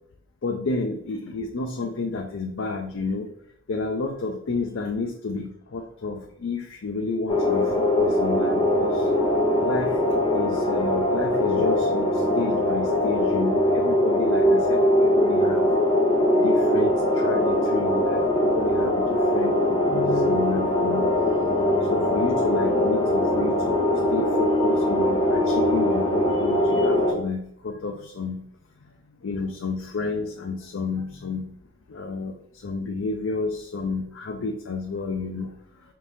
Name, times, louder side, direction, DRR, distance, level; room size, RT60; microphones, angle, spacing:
voice 1, 0.4-3.3 3.7-9.1 9.6-10.0 10.3-15.7 16.3-21.1 21.9-28.4 29.2-31.5 31.9-35.5, left 3 dB, 70° left, 2 dB, 0.5 m, -30 dB
sound 1, 7.3-27.1, left 1 dB, 25° left, 1.1 m, -22 dB
5.2 x 2.9 x 2.7 m, 0.68 s
head